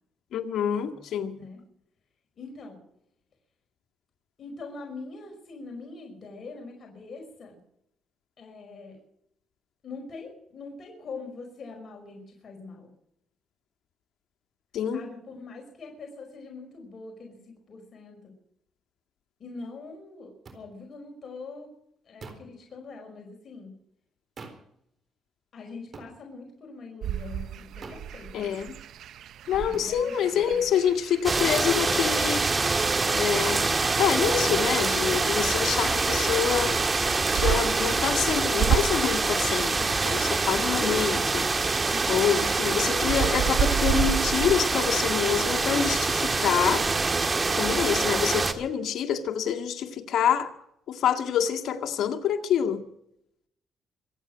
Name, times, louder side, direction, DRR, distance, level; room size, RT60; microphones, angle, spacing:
voice 1, 0.3-1.4 14.7-15.0 28.3-28.8 29.5-32.5 33.1-33.7 34.0-36.8 37.2-41.5 42.1-46.9 47.5-50.5 50.9-52.8, left 8 dB, 75° left, 2.0 m, -27 dB
voice 2, 2.4-2.8 4.4-7.6 8.4-9.0 9.8-12.9 14.9-18.3 19.4-21.7 22.0-23.7 25.5-28.6 29.5-30.7 41.9-42.5 47.8-48.2, left 3 dB, 50° left, 5.3 m, -43 dB
sound 1, 20.5-20.6 22.2-22.5 24.4-24.7 25.9-26.2 27.8-28.1 29.7-30.0 32.0-32.2 34.0-34.2 36.1-36.4, right 4 dB, 45° right, 3.9 m, -44 dB
sound 2, 27.0-46.6, right 9 dB, 75° right, 0.7 m, -34 dB
sound 3, 31.2-48.5, right 3 dB, 30° right, 1.7 m, -25 dB
25.5 x 9.1 x 6.2 m
cardioid pair, 90°, 0 cm